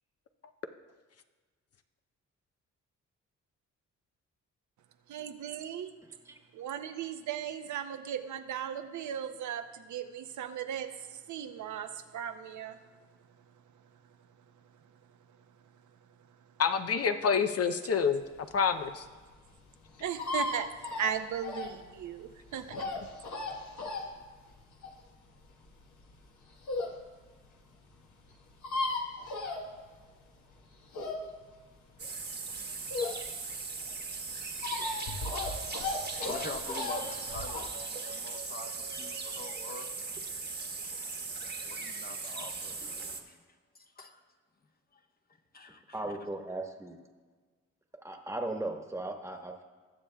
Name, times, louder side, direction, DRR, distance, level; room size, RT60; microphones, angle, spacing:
voice 1, 5.1-5.9 6.5-12.8 20.0-22.8, right 9 dB, 75° right, 8 dB, 0.7 m, -37 dB
voice 2, 16.6-18.2 18.5-19.0, left 6 dB, 50° left, 8 dB, 0.6 m, -27 dB
sound 1, 18.4-27.0 27.5-27.6 27.8-27.9 28.0-28.1 28.3-30.2 30.5-33.5 33.9-37.6, left 3 dB, 70° left, 1.3 m, -36 dB
sound 2, 32.0-43.2, right 4 dB, 35° right, 1.2 m, -39 dB
voice 3, 36.1-39.9 40.8-40.9 41.6-43.4 43.7-44.2 44.9-45.0 45.5-46.1, left 3 dB, 30° left, 5 dB, 1.0 m, -45 dB
voice 4, 45.9-47.0 48.0-49.6, right 2 dB, 10° right, 3 dB, 1.2 m, -37 dB
19.5 x 6.9 x 2.3 m, 1.4 s
cardioid pair, 75°, 30 cm